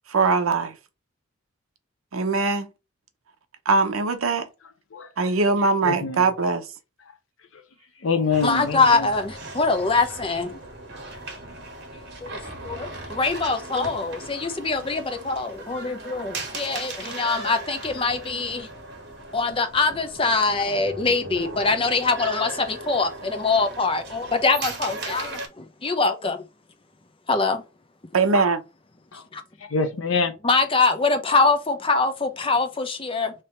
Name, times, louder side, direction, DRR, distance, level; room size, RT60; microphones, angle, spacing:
voice 1, 0.1-0.7 2.1-2.7 3.7-4.5 5.2-6.7 28.1-28.6, right 3 dB, 85° right, 0.8 m, -21 dB
voice 2, 5.8-6.2 8.0-9.1 29.1-29.2 29.7-30.3, left 4 dB, 70° left, 0.6 m, -25 dB
sound 1, 8.3-25.5, right 2 dB, 55° right, 1.3 m, -37 dB
voice 3, 8.4-10.6 12.2-12.4 12.6-18.7 19.3-26.4 27.3-27.6 29.3-29.4 30.4-33.3, left 3 dB, 25° left, 0.7 m, -23 dB
3.3 x 2.9 x 4.2 m
head